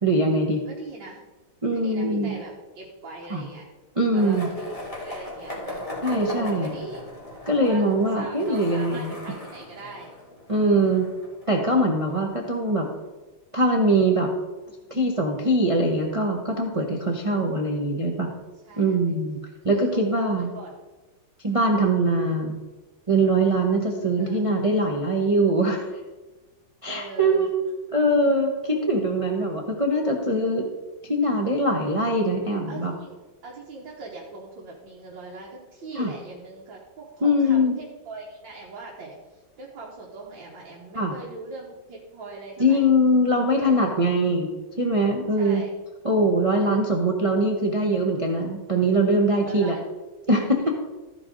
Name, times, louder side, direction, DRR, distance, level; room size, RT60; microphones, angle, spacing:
voice 1, 0.0-0.6 1.6-2.4 3.3-3.4 4.0-4.5 6.0-6.7 7.5-9.1 10.5-11.1 11.5-12.9 13.5-14.3 14.9-18.3 18.8-19.4 19.6-20.5 21.4-22.6 23.1-25.8 26.8-27.5 27.9-30.7 31.0-32.9 36.0-36.1 37.2-37.8 40.9-41.1 42.6-45.6 46.0-49.7 50.3-50.7, right 1 dB, 35° right, 1 dB, 0.5 m, -22 dB
voice 2, 0.7-1.2 1.7-3.7 4.1-7.0 7.5-7.9 8.1-10.1 12.0-12.2 17.4-17.5 18.7-19.0 19.6-20.8 24.2-24.4 26.9-27.5 28.8-29.0 32.7-42.9 43.5-44.0 45.4-45.7 49.4-49.8 50.3-50.7, right 3 dB, 80° right, -3 dB, 2.0 m, -40 dB
Skateboard, 4.2-12.1, left 1 dB, 20° left, 2.1 m, -38 dB
14.0 x 4.9 x 3.8 m, 1.2 s
omnidirectional pair, 2.1 m